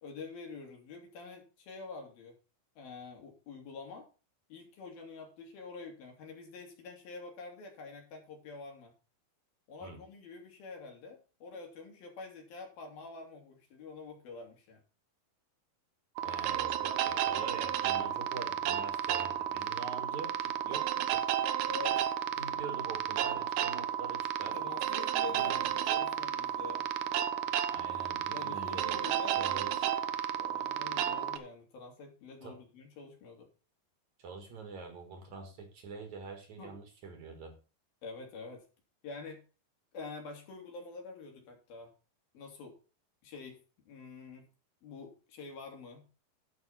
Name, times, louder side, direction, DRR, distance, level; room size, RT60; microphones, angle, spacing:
voice 1, 0.0-2.3 2.8-4.1 4.5-8.9 9.7-14.8 21.7-22.0 24.5-26.8 28.3-29.5 30.4-33.5 36.6-36.7 38.0-38.6 39.0-39.4 39.9-41.9 42.3-42.8 43.2-43.6 43.9-44.5 44.8-46.1, left 4 dB, 70° left, 2 dB, 4.4 m, -46 dB
voice 2, 16.2-21.3 22.4-24.6 25.2-25.6 27.7-29.0 29.4-29.9 32.4-32.6 34.2-37.6, right 4 dB, 55° right, 5 dB, 2.8 m, -45 dB
sound 1, 16.2-31.4, right 10 dB, 80° right, 1.7 m, -32 dB
11.0 x 6.1 x 5.6 m, 0.33 s
omnidirectional pair, 4.3 m